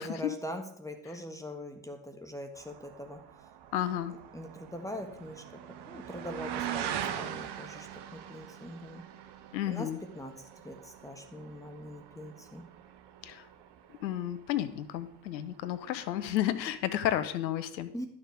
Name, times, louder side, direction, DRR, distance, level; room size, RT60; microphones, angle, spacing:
voice 1, 0.0-3.2 4.3-9.1 9.7-12.7 17.9-18.1, equal, 5° left, 6 dB, 1.5 m, -42 dB
sound 1, 2.6-15.0 15.3-15.9 16.4-16.5, right 10 dB, 50° right, 1.2 m, -42 dB
voice 2, 3.7-4.1 9.5-10.0 13.2-13.4 14.0-17.9, left 12 dB, 85° left, 12 dB, 0.8 m, -32 dB
11.0 x 7.0 x 4.7 m, 0.65 s
hypercardioid pair, 55°, 50 cm